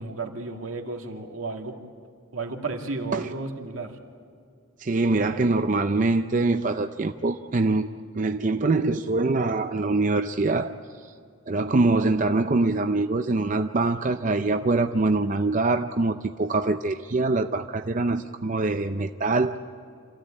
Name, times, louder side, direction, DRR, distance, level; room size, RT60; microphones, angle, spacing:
voice 1, 0.0-1.8 2.3-4.0, right 3 dB, 80° right, 2 dB, 2.3 m, -33 dB
voice 2, 4.8-7.9 8.1-10.8 11.5-19.6, right 3 dB, 40° right, 7 dB, 0.5 m, -24 dB
26.5 x 15.0 x 8.7 m, 2.4 s
head